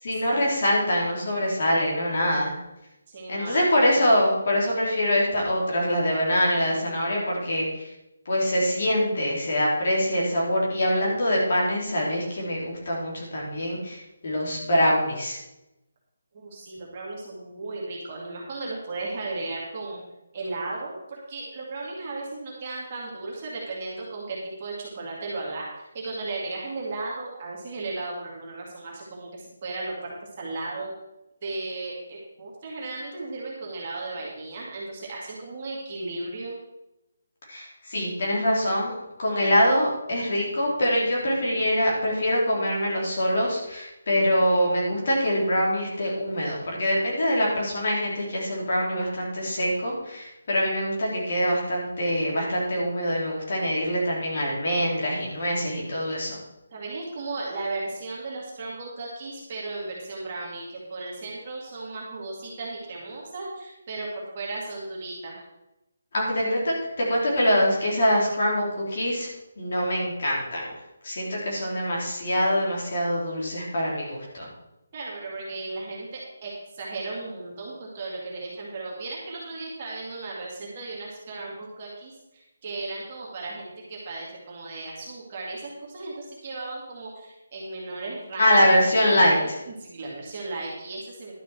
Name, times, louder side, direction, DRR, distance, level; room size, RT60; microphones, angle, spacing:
voice 1, 0.0-2.5 3.3-7.9 8.2-15.4 37.5-56.4 66.1-69.3 69.6-70.7 71.0-74.5 88.4-89.6, equal, 35° left, -4 dB, 3.4 m, -24 dB
voice 2, 3.1-4.1 16.3-20.0 20.3-29.9 30.4-30.9 31.4-36.6 56.7-65.4 74.9-91.3, right 3 dB, 25° right, -4 dB, 2.1 m, -35 dB
11.5 x 6.6 x 6.1 m, 0.92 s
hypercardioid pair, 180°, 0 cm